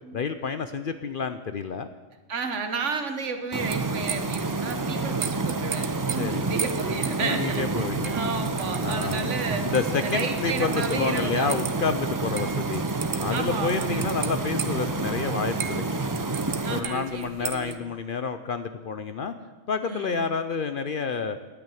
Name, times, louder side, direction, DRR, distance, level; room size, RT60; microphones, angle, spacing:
voice 1, 0.1-1.9 6.2-6.4 7.2-8.1 8.8-9.3 9.6-12.8 13.2-16.0 16.7-19.3 19.7-21.4, left 5 dB, 55° left, 9 dB, 0.7 m, -29 dB
voice 2, 2.3-9.7 10.0-11.6 13.3-14.1 16.6-17.8 19.8-20.2, right 4 dB, 70° right, 7 dB, 1.5 m, -32 dB
sound 1, 3.5-16.8, right 3 dB, 30° right, 0.4 m, -29 dB
sound 2, 3.7-17.8, right 8 dB, 85° right, 1.2 m, -38 dB
10.5 x 8.8 x 9.0 m, 1.2 s
omnidirectional pair, 1.3 m